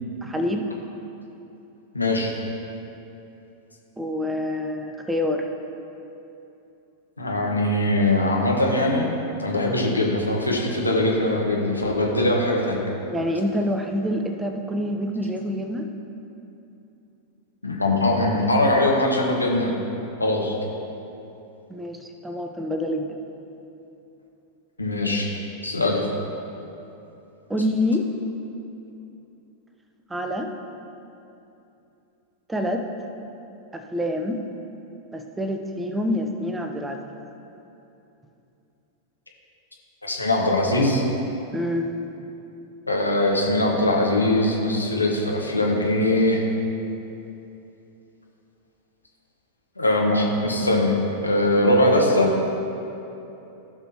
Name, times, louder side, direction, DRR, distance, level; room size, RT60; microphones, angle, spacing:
voice 1, 0.2-0.7 4.0-5.4 13.1-15.9 21.7-23.2 27.5-28.1 30.1-30.5 32.5-32.9 33.7-34.4 35.1-37.0 41.5-41.9, left 1 dB, 10° right, 5 dB, 0.7 m, -26 dB
voice 2, 1.9-2.3 7.2-9.1 9.4-12.8 17.6-19.7 20.2-20.6 24.8-25.3 25.6-26.0 40.0-41.0 42.9-46.4 49.8-51.0 51.2-52.3, left 1 dB, 80° left, -1 dB, 1.2 m, -21 dB
15.5 x 6.1 x 2.9 m, 2.9 s
figure-of-eight pair, 90°, 0 cm